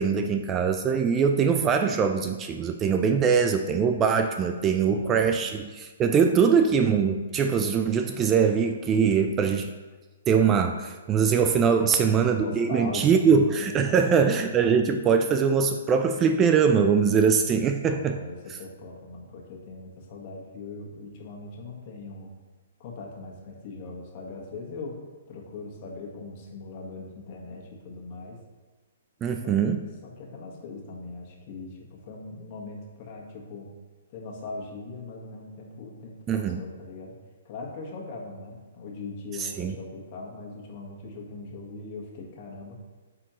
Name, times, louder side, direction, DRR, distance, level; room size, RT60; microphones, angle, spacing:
voice 1, 0.0-9.7 10.3-18.2 29.2-29.8 36.3-36.6 39.4-39.7, right 6 dB, 20° right, 6 dB, 0.3 m, -22 dB
voice 2, 4.8-5.5 6.1-6.7 11.8-14.4 17.9-22.3 22.8-25.0 25.3-28.4 29.4-29.7 30.0-33.7 34.1-37.2 37.4-42.8, left 3 dB, 40° left, 0 dB, 1.5 m, -40 dB
8.8 x 4.2 x 3.1 m, 1.3 s
hypercardioid pair, 145°, 0 cm